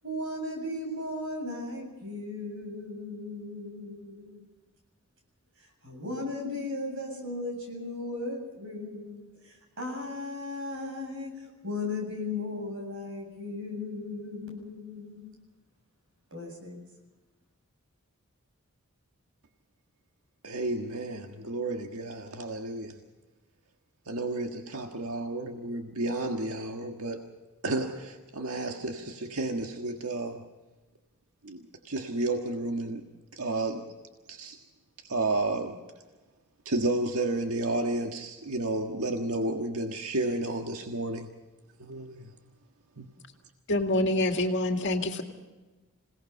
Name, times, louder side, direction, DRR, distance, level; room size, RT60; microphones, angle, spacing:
voice 1, 0.0-4.4 5.6-15.3 16.3-16.8, left 2 dB, 60° right, 2 dB, 7.7 m, -36 dB
voice 2, 20.4-23.0 24.1-27.3 27.6-30.4 31.4-33.0 33.4-33.9 34.3-34.6 35.1-35.8 36.6-41.3 41.8-42.3 43.0-43.1, right 2 dB, 80° right, 4 dB, 1.6 m, -31 dB
voice 3, 43.7-45.2, left 1 dB, 55° left, 4 dB, 2.2 m, -26 dB
27.5 x 18.0 x 5.5 m, 1.2 s
head